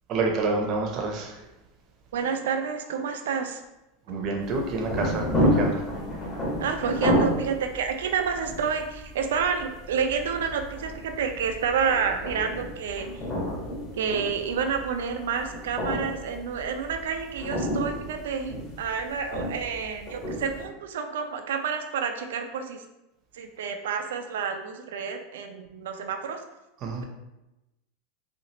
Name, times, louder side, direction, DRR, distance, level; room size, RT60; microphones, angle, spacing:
voice 1, 0.1-1.3 4.1-5.8 26.8-27.0, right 3 dB, 40° right, 1 dB, 0.7 m, -28 dB
voice 2, 2.1-3.6 6.6-13.1 13.9-22.8 23.3-26.4, right 6 dB, 85° right, 6 dB, 0.4 m, -29 dB
sound 1, 4.4-20.6, equal, 30° left, 1.4 m, -31 dB
4.2 x 2.4 x 2.9 m, 0.96 s
supercardioid pair, 130°, 0 cm